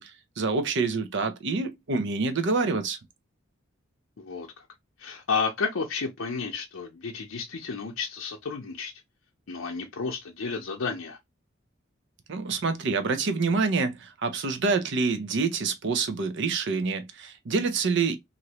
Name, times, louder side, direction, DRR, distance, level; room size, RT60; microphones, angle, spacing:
voice 1, 0.0-3.0 12.3-18.2, right 4 dB, 60° right, 0.6 m, -27 dB
voice 2, 4.2-4.7 5.0-8.9 9.5-11.2, left 5 dB, 80° left, 0.6 m, -32 dB
3.1 x 2.5 x 2.8 m
head